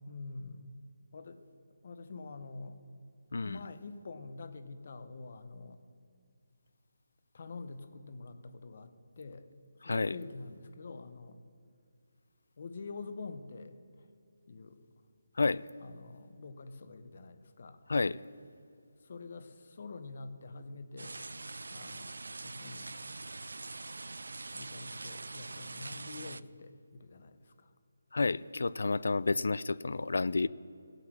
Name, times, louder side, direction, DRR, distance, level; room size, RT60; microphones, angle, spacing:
voice 1, 0.1-0.7 1.1-1.4 1.8-2.8 3.4-5.8 7.3-9.5 9.8-11.4 12.6-13.7 14.5-14.8 15.8-17.8 19.0-21.4 21.7-22.9 24.5-27.7, left 3 dB, 35° left, 10 dB, 0.7 m, -46 dB
voice 2, 9.8-10.2 15.4-15.6 17.9-18.2 28.1-30.5, left 3 dB, 60° left, 19 dB, 0.3 m, -30 dB
sound 1, 21.0-26.4, right 3 dB, 80° right, 0.4 m, -43 dB
16.0 x 7.8 x 6.1 m, 2.5 s
hypercardioid pair, 180°, 0 cm